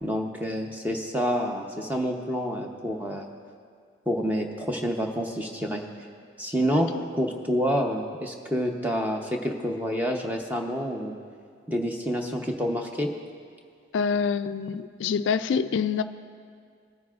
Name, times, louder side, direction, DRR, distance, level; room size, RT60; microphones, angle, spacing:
voice 1, 0.0-3.3 4.1-5.8 6.4-11.2 11.7-13.1, equal, 10° right, 1 dB, 0.8 m, -28 dB
voice 2, 6.7-7.0 13.9-16.0, left 6 dB, 75° left, 12 dB, 0.3 m, -26 dB
19.5 x 9.5 x 2.4 m, 2.2 s
head